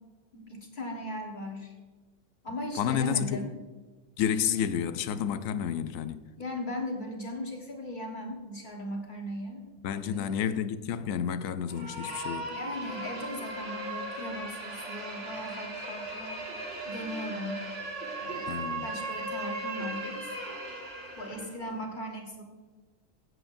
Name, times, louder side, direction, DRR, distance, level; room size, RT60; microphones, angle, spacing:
voice 1, 0.3-1.7 2.4-3.5 6.4-9.7 10.0-10.4 12.5-16.5 16.8-17.6 18.2-20.2 21.1-22.4, left 1 dB, 40° left, 1.5 m, -38 dB
voice 2, 2.8-3.5 4.2-6.2 9.8-12.5 18.5-18.9, left 8 dB, 85° left, 1.0 m, -30 dB
sound 1, 11.7-21.5, right 2 dB, 65° right, 2.1 m, -37 dB
15.5 x 7.9 x 2.6 m
omnidirectional pair, 1.4 m